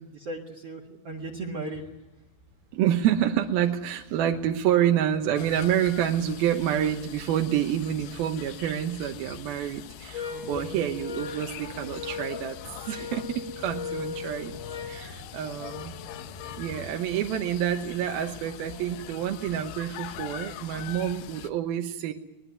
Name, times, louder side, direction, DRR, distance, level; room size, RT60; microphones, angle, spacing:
voice 1, 0.0-1.8 10.3-10.8, right 2 dB, 45° right, -1 dB, 2.3 m, -37 dB
Hammer, 1.1-16.8, left 2 dB, 65° left, 5.7 m, -52 dB
voice 2, 2.7-12.6 12.9-14.5 14.8-16.2 16.5-22.1, right 10 dB, 75° right, 4 dB, 2.8 m, -28 dB
sound 1, 5.4-21.5, left 12 dB, 90° left, 3.1 m, -43 dB
sound 2, 10.1-15.1, left 6 dB, 35° left, 2.6 m, -38 dB
22.5 x 20.5 x 9.5 m, 0.96 s
omnidirectional pair, 4.6 m